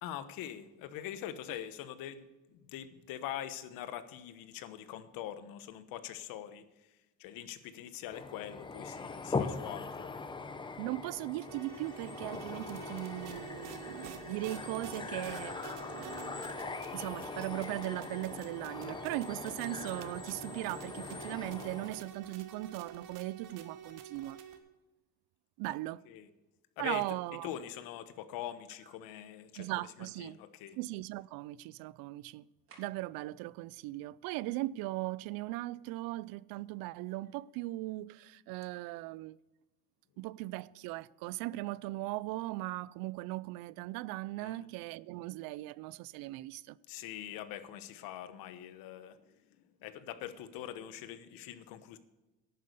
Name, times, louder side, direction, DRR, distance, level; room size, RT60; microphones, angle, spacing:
voice 1, 0.0-6.6 7.2-10.1 26.1-26.3 26.8-27.0 27.4-29.7 30.2-30.8 44.4-44.6 46.9-49.2 49.8-52.0, left 11 dB, 80° left, 1.2 m, -43 dB
sound 1, 8.1-22.1, left 4 dB, 15° left, 0.7 m, -41 dB
voice 2, 10.8-15.6 15.9-16.5 16.9-24.4 25.6-26.0 26.8-27.5 29.6-30.4 30.8-32.5 32.8-39.4 40.2-46.8, right 18 dB, 85° right, 0.5 m, -38 dB
sound 2, 11.5-24.6, right 8 dB, 70° right, 1.7 m, -49 dB
sound 3, 29.5-29.8 32.7-33.2, right 4 dB, 40° right, 3.2 m, -59 dB
11.0 x 9.4 x 6.7 m
cardioid pair, 150°, 34 cm